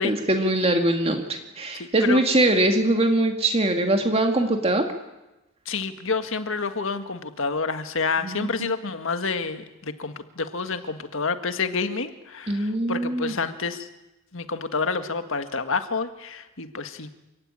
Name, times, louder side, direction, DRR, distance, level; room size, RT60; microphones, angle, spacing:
voice 1, 0.0-4.8 8.2-8.7 12.5-13.3, right 1 dB, 30° right, 4 dB, 2.2 m, -22 dB
voice 2, 1.8-2.2 5.7-13.9 14.3-17.1, left 4 dB, 65° left, 9 dB, 1.8 m, -28 dB
27.5 x 16.5 x 9.9 m, 1.0 s
head